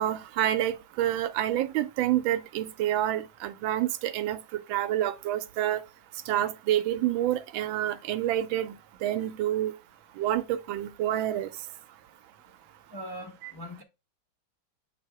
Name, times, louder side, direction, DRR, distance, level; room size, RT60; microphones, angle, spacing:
voice 1, 0.0-4.4 4.7-5.8 6.3-8.8 9.0-9.7 10.2-11.5 13.4-13.5, right 12 dB, 80° right, 1.3 m, -28 dB
voice 2, 12.9-13.8, equal, 15° left, 0.9 m, -40 dB
7.8 x 2.7 x 4.6 m
omnidirectional pair, 2.2 m